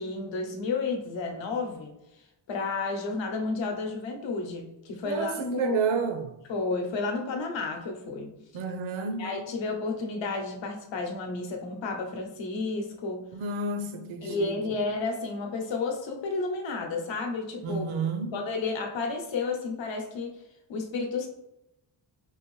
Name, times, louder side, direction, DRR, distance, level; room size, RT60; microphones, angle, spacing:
voice 1, 0.0-1.9 2.5-6.0 6.5-8.3 9.2-13.2 14.2-18.0 18.3-20.4 20.7-21.3, left 3 dB, 70° left, 0.8 m, -31 dB
voice 2, 5.0-6.4 8.5-9.4 13.3-14.5 17.6-18.4, right 5 dB, 75° right, 0.6 m, -31 dB
3.7 x 2.6 x 3.1 m
cardioid pair, 110°, 47 cm